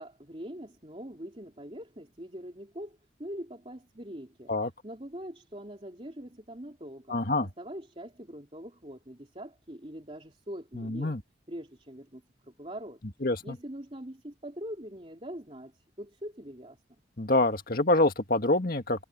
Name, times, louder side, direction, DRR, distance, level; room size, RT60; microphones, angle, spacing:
voice 1, 0.0-4.5 4.8-7.2 7.6-11.1 11.5-13.0 13.4-15.7 16.0-16.8, equal, 30° right, 3.1 m, -43 dB
voice 2, 7.1-7.5 10.7-11.2 13.2-13.6 17.2-19.0, left 2 dB, 45° left, 1.9 m, -26 dB
head